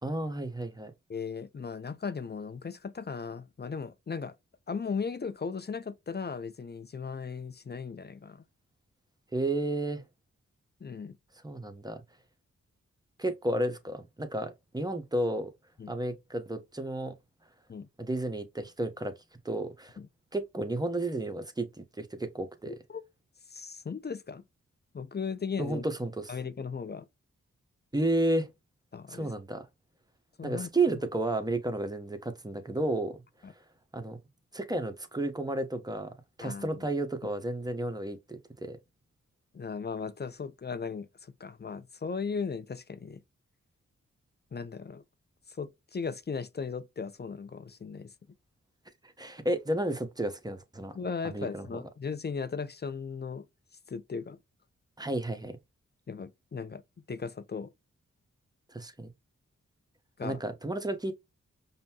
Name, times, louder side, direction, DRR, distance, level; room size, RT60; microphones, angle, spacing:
voice 1, 0.0-0.9 9.3-10.0 11.4-12.0 13.2-15.5 15.9-17.2 18.0-19.1 19.4-20.0 20.3-22.7 25.6-26.3 27.9-28.5 29.1-29.6 30.4-33.2 33.9-34.2 34.5-36.1 36.4-38.8 49.2-50.9 51.2-51.6 55.0-55.6 58.7-59.1 60.2-61.1, right 2 dB, 15° right, 1.0 m, -32 dB
voice 2, 1.1-4.3 4.7-8.4 10.8-11.2 15.8-15.9 17.7-17.9 20.0-20.1 22.7-23.0 23.5-24.4 24.9-25.8 26.3-27.1 28.9-29.3 30.4-31.0 33.4-33.5 36.4-36.9 39.5-43.2 44.5-45.0 45.5-48.1 50.9-53.4 53.9-54.4 56.1-56.8 57.1-57.7 60.2-60.4, left 5 dB, 35° left, 0.5 m, -37 dB
5.3 x 2.1 x 2.8 m
cardioid pair, 45°, 31 cm